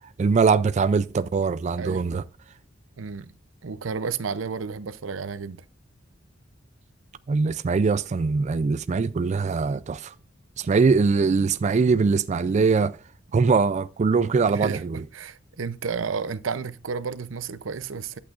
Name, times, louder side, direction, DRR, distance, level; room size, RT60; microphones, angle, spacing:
voice 1, 0.2-2.2 7.3-10.1 10.6-13.0 13.3-15.0, right 4 dB, 35° right, 0.3 m, -22 dB
voice 2, 1.8-2.2 3.0-3.3 3.6-5.6 14.5-18.2, right 5 dB, 90° right, 0.6 m, -32 dB
11.0 x 8.3 x 2.5 m
head